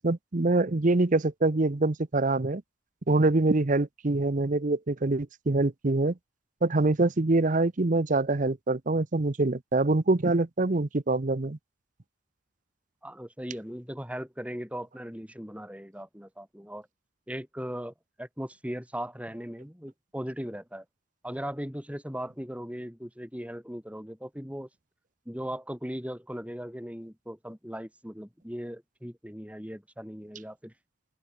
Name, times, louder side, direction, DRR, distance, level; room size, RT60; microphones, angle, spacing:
voice 1, 0.0-2.6 3.1-6.1 6.6-11.6, right 2 dB, 40° right, 0.8 m, -25 dB
voice 2, 13.0-16.9 17.3-20.8 21.2-24.7 25.2-30.7, equal, 5° right, 6.6 m, -38 dB
open air
head